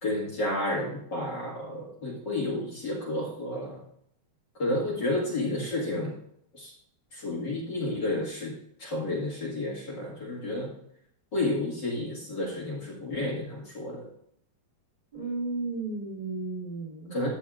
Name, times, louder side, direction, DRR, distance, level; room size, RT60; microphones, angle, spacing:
voice 1, 0.0-3.8 4.6-6.2 6.5-6.7 7.1-10.7 11.3-14.1 17.1-17.3, left 1 dB, 40° left, -4 dB, 1.6 m, -31 dB
voice 2, 15.1-17.1, right 3 dB, 70° right, -3 dB, 0.4 m, -33 dB
14.0 x 7.1 x 2.4 m, 0.70 s
omnidirectional pair, 4.3 m